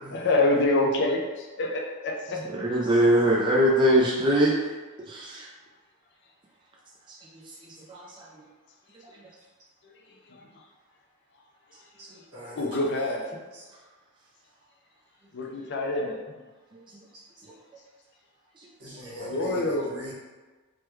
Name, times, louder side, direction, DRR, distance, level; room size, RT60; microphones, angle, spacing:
voice 1, 0.1-1.2 1.6-2.4 12.6-13.3 15.3-16.2 19.1-19.9, left 2 dB, 50° left, 1 dB, 0.4 m, -26 dB
voice 2, 2.5-4.5 5.1-5.4 7.9-8.0, right 1 dB, 20° right, -5 dB, 0.4 m, -21 dB
voice 3, 12.0-12.7 12.9-13.0 13.5-13.6 18.8-20.1, equal, 80° right, -7 dB, 1.3 m, -42 dB
3.4 x 2.2 x 3.0 m, 1.3 s
head